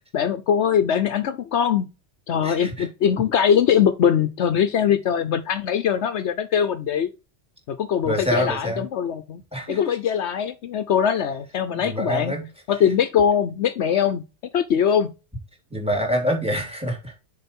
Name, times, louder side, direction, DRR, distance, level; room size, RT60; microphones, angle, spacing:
voice 1, 0.1-1.9 2.3-7.1 7.7-9.4 9.7-12.4 12.7-14.2 14.5-15.1, left 8 dB, 70° left, 1.0 m, -22 dB
voice 2, 2.4-2.9 8.0-8.8 9.5-9.9 11.7-12.5 15.7-17.2, equal, 5° right, 3.2 m, -26 dB
6.8 x 5.8 x 4.3 m
omnidirectional pair, 1.2 m